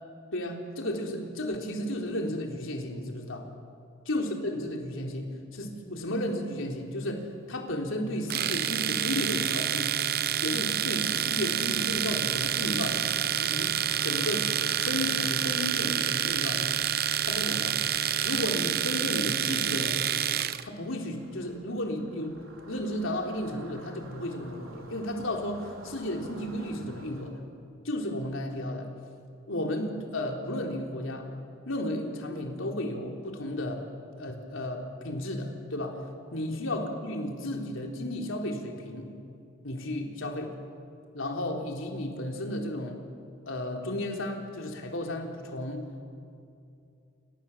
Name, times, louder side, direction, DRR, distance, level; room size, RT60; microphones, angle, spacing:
voice 1, 0.3-3.5 4.1-10.0 10.4-13.1 13.4-13.8 14.0-14.5 14.8-16.8 17.3-17.8 18.2-20.1 20.6-22.4 22.7-27.4 27.8-28.9 29.5-31.3 31.7-33.8 34.2-36.0 36.3-39.1 39.6-40.5 41.1-43.0 43.5-45.8, left 1 dB, 70° left, 2 dB, 3.8 m, -33 dB
sound 1, 8.2-27.3, right 1 dB, 75° right, 4.0 m, -52 dB
Domestic sounds home sounds, 8.3-20.6, right 10 dB, 50° right, 0.8 m, -28 dB
29.5 x 25.5 x 7.4 m, 2.6 s
head